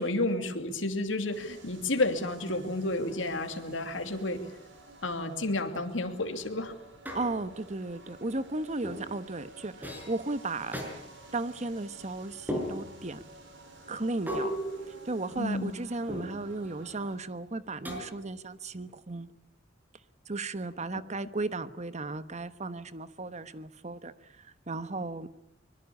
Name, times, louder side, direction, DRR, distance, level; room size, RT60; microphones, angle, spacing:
voice 1, 0.0-4.5 5.0-6.7 15.4-15.7 20.9-21.0, left 2 dB, 80° left, 6 dB, 2.7 m, -31 dB
sound 1, 1.3-17.2, right 2 dB, 70° right, 6.5 m, -52 dB
sound 2, 7.0-7.7 8.8-9.1 9.8-10.2 10.7-10.9 12.5-13.1 14.3-15.6 16.1-16.6 17.8-18.4, equal, 10° right, 5.9 m, -36 dB
voice 2, 7.1-10.8 11.3-13.2 13.9-14.5 15.0-19.3 20.3-25.3, right 2 dB, 40° right, 13 dB, 1.2 m, -35 dB
24.0 x 22.0 x 8.5 m, 0.79 s
head